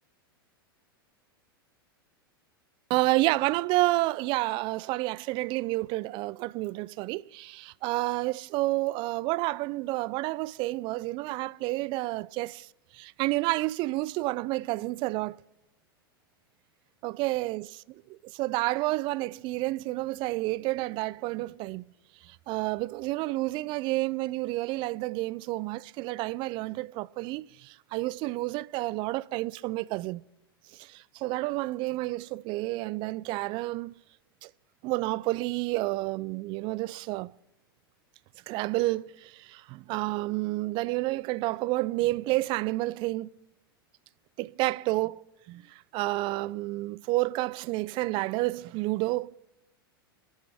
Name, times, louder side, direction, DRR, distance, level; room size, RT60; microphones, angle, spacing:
voice 1, 2.9-12.7 12.9-15.4 17.0-17.7 18.1-21.8 22.2-30.2 30.8-33.9 34.4-34.5 34.8-37.3 38.5-43.3 44.4-45.2 45.5-45.7 45.9-49.3, right 20 dB, 40° right, 0.4 m, -30 dB
23.5 x 10.5 x 3.5 m
hypercardioid pair, 100°, 12 cm